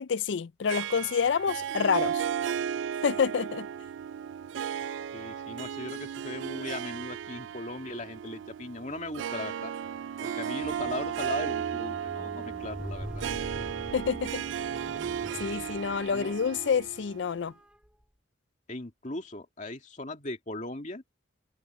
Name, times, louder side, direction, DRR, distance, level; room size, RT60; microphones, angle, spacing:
voice 1, 0.0-2.3 3.0-3.7 13.9-14.4 15.4-17.5, left 6 dB, 65° left, 0.4 m, -28 dB
Harp, 0.7-17.4, right 8 dB, 75° right, 0.3 m, -35 dB
voice 2, 5.1-9.7 10.2-13.2 16.1-16.4 18.7-21.0, left 2 dB, 40° left, 2.4 m, -38 dB
Squeak, 10.6-17.0 17.7-17.9, equal, 5° right, 3.0 m, -43 dB
open air
head